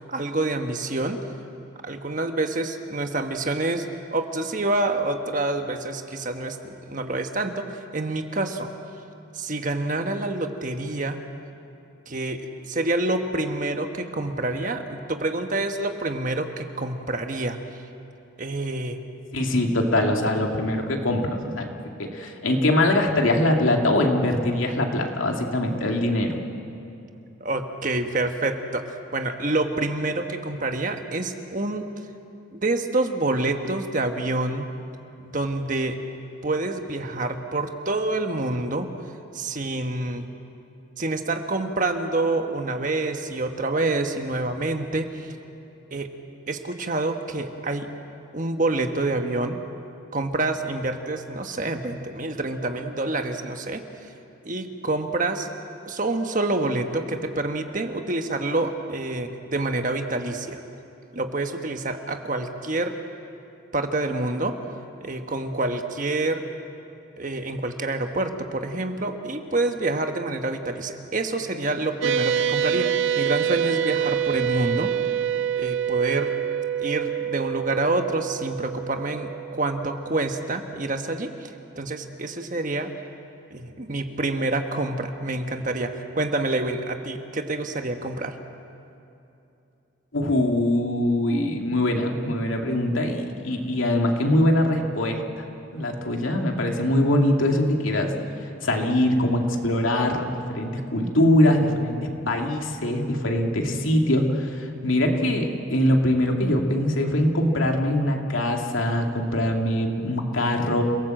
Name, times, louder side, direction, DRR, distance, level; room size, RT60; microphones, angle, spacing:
voice 1, 0.1-1.2 1.8-3.9 4.1-7.7 7.9-8.7 9.3-11.2 12.1-17.6 18.4-19.0 27.4-31.9 32.5-34.7 35.2-36.0 36.4-38.9 39.3-40.3 41.0-45.3 45.9-46.1 46.5-47.9 48.3-49.6 50.1-53.8 54.4-55.5 55.8-60.6 61.1-63.0 63.7-64.6 65.0-66.4 67.2-72.9 73.2-74.9 75.6-76.3 76.8-81.5 81.8-82.9 83.5-88.4, right 2 dB, 40° right, 6 dB, 1.4 m, -27 dB
voice 2, 19.3-26.4 90.1-95.4 95.7-98.1 98.6-110.8, left 1 dB, 85° left, 2 dB, 2.5 m, -23 dB
sound 1, 72.0-80.7, right 9 dB, 75° right, 0.7 m, -26 dB
29.0 x 18.0 x 7.8 m, 2.8 s
head